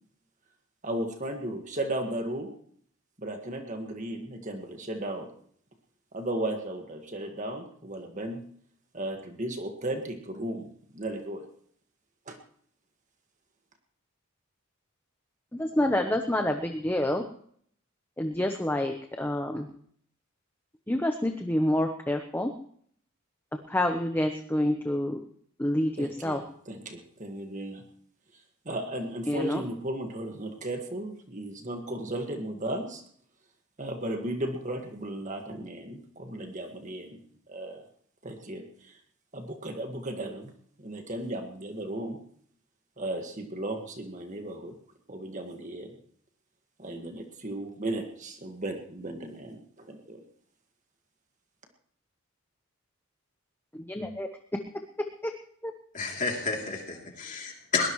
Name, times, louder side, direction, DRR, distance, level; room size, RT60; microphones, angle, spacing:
voice 1, 0.8-2.5 3.2-5.3 6.1-8.4 8.9-10.7 10.9-11.4 12.3-12.4 26.0-27.8 28.6-33.0 33.8-37.8 38.2-38.9 39.3-40.5 40.8-42.2 43.0-44.7 45.1-45.9 46.8-50.2, right 1 dB, 35° right, 4 dB, 1.8 m, -35 dB
voice 2, 15.5-17.2 18.2-19.7 20.9-22.5 23.7-25.2 25.6-26.4 29.3-29.6 53.7-54.3 55.2-55.3 55.6-55.7, left 1 dB, 10° left, 5 dB, 0.8 m, -28 dB
voice 3, 55.9-57.9, left 4 dB, 35° left, 0 dB, 3.1 m, -30 dB
21.5 x 19.0 x 3.2 m, 0.62 s
head